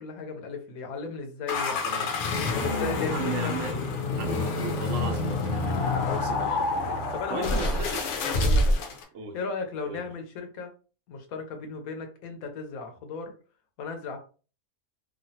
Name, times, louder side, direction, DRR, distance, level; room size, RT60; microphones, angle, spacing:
voice 1, 0.0-2.1 2.6-4.0 7.1-7.8 8.4-8.8 9.3-10.7 11.1-13.3 13.8-14.2, left 4 dB, 80° left, 5 dB, 1.2 m, -36 dB
sound 1, 1.5-9.0, left 2 dB, 65° left, 0.9 m, -27 dB
voice 2, 1.7-2.1 3.1-3.7 4.2-8.1 9.1-9.4 9.9-10.0, right 5 dB, 65° right, 4 dB, 0.9 m, -37 dB
3.1 x 2.4 x 2.7 m, 0.36 s
omnidirectional pair, 1.5 m